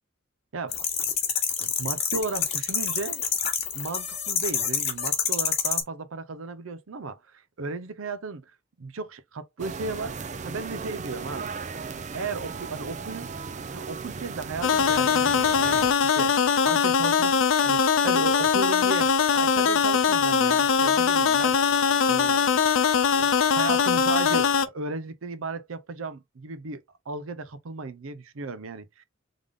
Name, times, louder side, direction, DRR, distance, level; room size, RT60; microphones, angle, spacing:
sound 1, 0.7-5.8, left 7 dB, 30° left, 1.2 m, -27 dB
voice 1, 1.6-3.2 3.7-8.4 8.8-10.1 10.4-11.5 11.9-13.3 13.7-15.9 16.1-21.6 22.1-22.4 23.1-29.0, right 3 dB, 85° right, 0.6 m, -35 dB
sound 2, 9.6-15.9, right 5 dB, 35° right, 0.5 m, -36 dB
sound 3, 14.6-24.7, left 6 dB, 80° left, 0.5 m, -21 dB
3.5 x 3.5 x 3.5 m
head